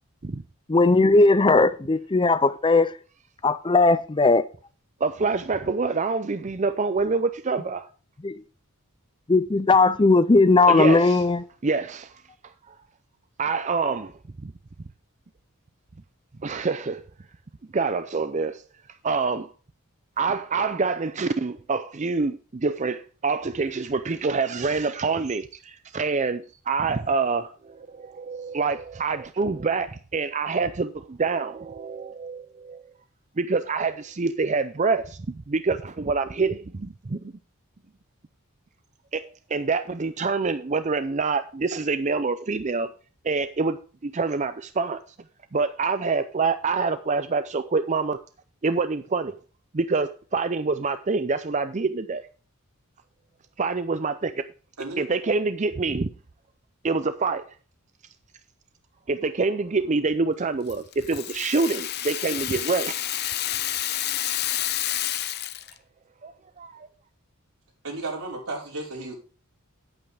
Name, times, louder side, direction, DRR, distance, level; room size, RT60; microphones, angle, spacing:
voice 1, 0.7-2.9 3.4-4.4 8.2-8.4 9.3-11.4, left 3 dB, 20° left, 0.5 m, -18 dB
voice 2, 5.0-7.9 10.7-11.3 11.6-12.8 13.4-14.1 14.4-14.5 16.4-17.0 17.7-18.6 19.0-19.5 20.2-32.8 33.4-37.3 39.1-39.2 39.5-42.9 43.2-45.0 45.5-48.2 48.6-49.4 49.7-52.2 53.6-54.3 55.0-56.1 56.8-57.5 59.1-63.0 66.2-66.9, right 4 dB, 30° right, 0.5 m, -26 dB
voice 3, 54.8-55.1 67.8-69.1, right 2 dB, 75° right, 5.0 m, -33 dB
Rattle (instrument), 60.7-65.8, left 12 dB, 45° left, 0.8 m, -29 dB
10.0 x 8.8 x 3.5 m
head